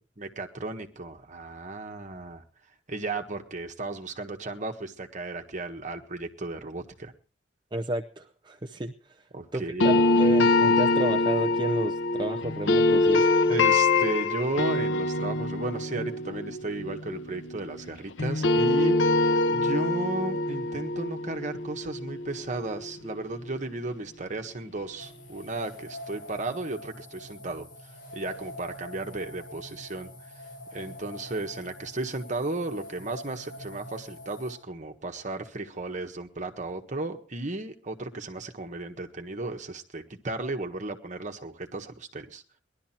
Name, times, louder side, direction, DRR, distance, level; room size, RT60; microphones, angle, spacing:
voice 1, 0.2-2.4 2.9-7.1 9.3-10.0 13.5-30.1 30.7-42.4, right 2 dB, 40° right, 5 dB, 1.6 m, -34 dB
voice 2, 7.7-9.3 9.5-13.3, right 1 dB, 25° right, 5 dB, 0.7 m, -32 dB
sound 1, 9.8-17.9 18.2-23.1, left 2 dB, 75° left, 0.9 m, -24 dB
sound 2, 25.0-34.5, left 1 dB, 50° left, 7.9 m, -44 dB
19.5 x 12.0 x 4.4 m, 0.38 s
head